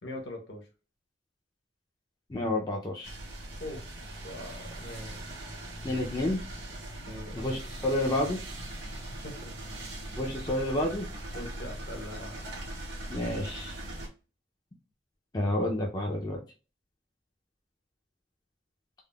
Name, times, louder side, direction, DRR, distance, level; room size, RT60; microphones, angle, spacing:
voice 1, 0.0-0.6 3.6-3.8 4.2-5.2 5.6-5.7 7.1-7.4 9.2-9.5 11.3-12.3, left 1 dB, 70° left, 1 dB, 1.0 m, -41 dB
voice 2, 2.3-3.1 5.8-6.4 7.3-8.4 10.2-11.1 13.1-13.8 15.3-16.4, left 1 dB, 20° left, 0 dB, 0.4 m, -29 dB
sound 1, 3.0-14.1, right 1 dB, 80° right, 1.1 m, -40 dB
3.5 x 2.0 x 2.2 m, 0.33 s
head